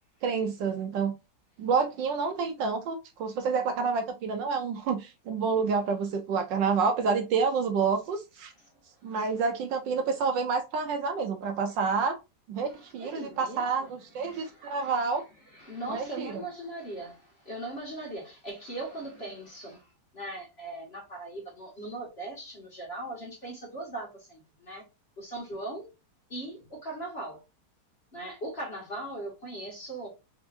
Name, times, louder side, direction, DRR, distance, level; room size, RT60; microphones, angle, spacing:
voice 1, 0.2-1.1 1.6-8.5 9.0-12.2 12.5-15.2 15.8-16.3, right 5 dB, 75° right, 1.1 m, -28 dB
voice 2, 12.7-13.7 14.2-15.0 15.5-24.8 25.2-25.9 26.3-27.4 28.1-30.1, right 1 dB, 35° left, 1.2 m, -39 dB
3.9 x 3.5 x 2.5 m
omnidirectional pair, 2.3 m